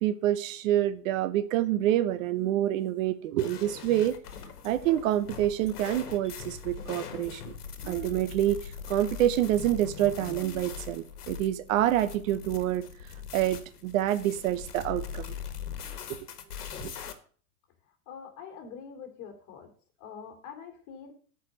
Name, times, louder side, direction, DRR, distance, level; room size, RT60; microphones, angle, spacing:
voice 1, 0.0-4.2 4.6-7.5 7.8-15.3 16.1-16.2 16.8-16.9, right 13 dB, 60° right, 1.0 m, -27 dB
sound 1, 3.4-17.1, left 7 dB, 85° left, 1.6 m, -41 dB
voice 2, 18.1-19.7 20.0-21.1, left 7 dB, 40° left, 3.0 m, -44 dB
8.2 x 5.2 x 7.4 m
hypercardioid pair, 120°, 45 cm